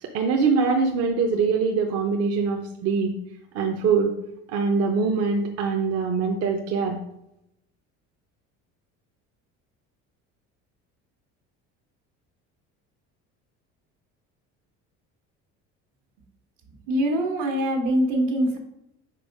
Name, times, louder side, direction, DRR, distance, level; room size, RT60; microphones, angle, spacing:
voice 1, 0.0-3.1 3.5-4.1 4.5-7.0, right 5 dB, 55° right, 2 dB, 0.8 m, -23 dB
voice 2, 16.9-18.6, equal, 75° right, 2 dB, 1.6 m, -23 dB
5.4 x 4.5 x 5.3 m, 0.82 s
cardioid pair, 140°, 30 cm